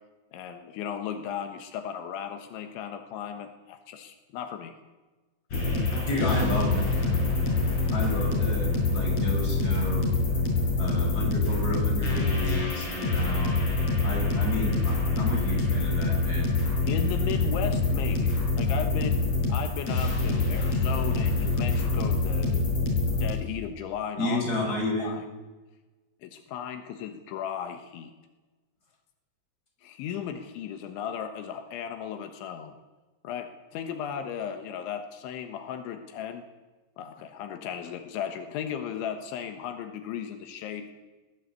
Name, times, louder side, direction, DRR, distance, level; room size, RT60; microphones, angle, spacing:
voice 1, 0.3-4.7 16.9-22.8 23.2-24.4 25.0-25.3 26.2-28.1 29.8-32.8 33.2-36.5 37.0-40.9, left 8 dB, 80° left, 7 dB, 3.7 m, -36 dB
sound 1, 5.5-23.3, left 3 dB, 35° left, 6.2 m, -25 dB
voice 2, 6.1-7.3 7.9-10.1 10.8-13.7 14.0-16.5 24.2-25.2, left 1 dB, 20° left, -1 dB, 6.6 m, -31 dB
22.0 x 16.5 x 8.3 m, 1.2 s
omnidirectional pair, 5.3 m